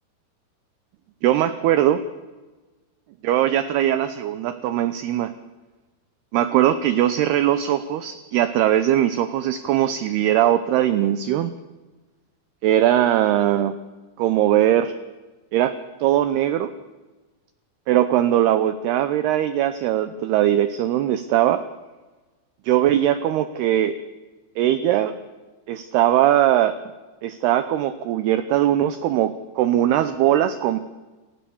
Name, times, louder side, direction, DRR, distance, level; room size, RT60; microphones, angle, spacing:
voice 1, 1.2-2.0 3.2-5.3 6.3-11.5 12.6-13.8 14.2-14.9 15.5-16.7 17.9-21.6 22.7-24.0 24.6-25.1 25.7-26.8 27.2-30.8, right 12 dB, 85° right, 12 dB, 2.2 m, -20 dB
29.0 x 16.0 x 7.1 m, 1.2 s
omnidirectional pair, 5.7 m